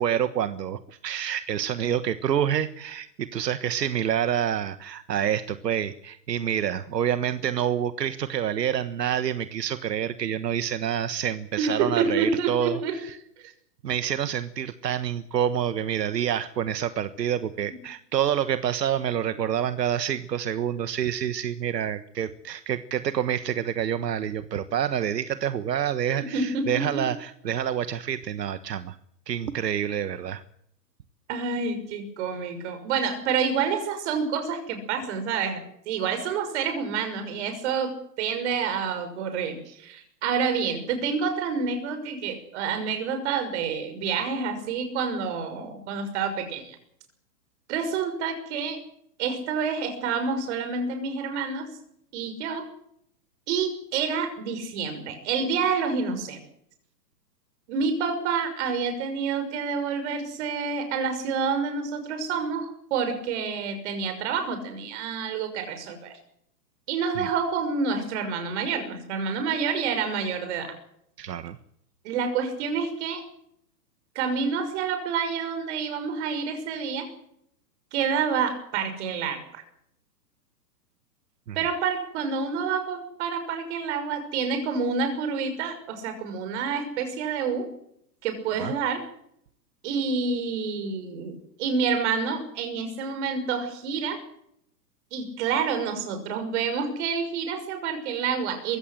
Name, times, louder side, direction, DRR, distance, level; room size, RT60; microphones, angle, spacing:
voice 1, 0.0-13.2 13.8-29.0 29.3-30.4 39.7-39.8 67.1-67.3 71.2-71.6 81.5-81.6 88.6-88.7, right 9 dB, 80° right, 12 dB, 1.5 m, -27 dB
voice 2, 11.6-13.0 13.4-13.5 17.7-17.8 26.2-27.0 31.3-35.6 35.9-46.8 47.7-48.8 49.2-51.7 52.1-52.7 53.5-56.4 57.7-66.1 66.9-70.7 72.0-73.2 74.1-77.1 77.9-79.6 81.5-87.7 88.2-89.0 89.8-94.2 95.1-98.8, right 5 dB, 45° right, 8 dB, 6.2 m, -28 dB
23.0 x 16.5 x 7.8 m, 0.71 s
hypercardioid pair, 150°, 49 cm